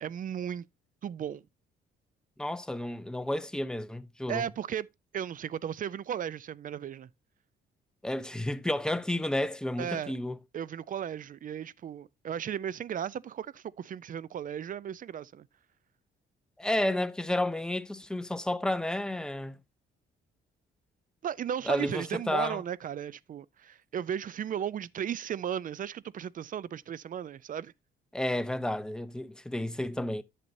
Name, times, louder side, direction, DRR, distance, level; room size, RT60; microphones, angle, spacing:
voice 1, 0.0-0.7 1.0-1.4 4.3-4.9 5.1-7.1 9.8-10.1 10.5-15.5 21.2-27.7, right 9 dB, 45° right, 0.4 m, -35 dB
voice 2, 2.4-4.5 8.0-10.4 16.6-19.6 21.6-22.6 28.1-30.2, left 1 dB, 5° left, 0.6 m, -31 dB
11.0 x 6.7 x 2.6 m
cardioid pair, 90°, 20 cm